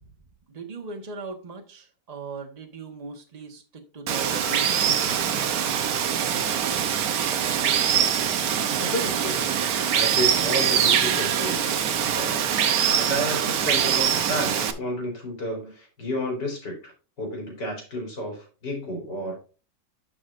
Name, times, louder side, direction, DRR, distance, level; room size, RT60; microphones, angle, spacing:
voice 1, 0.5-5.2, right 4 dB, 25° right, 3 dB, 1.3 m, -39 dB
Water, 4.1-14.7, right 8 dB, 60° right, 1.2 m, -23 dB
voice 2, 8.8-9.4 9.9-12.5 12.9-16.8 17.2-19.4, equal, 75° left, 0 dB, 4.1 m, -31 dB
11.0 x 6.2 x 2.6 m, 0.35 s
omnidirectional pair, 1.9 m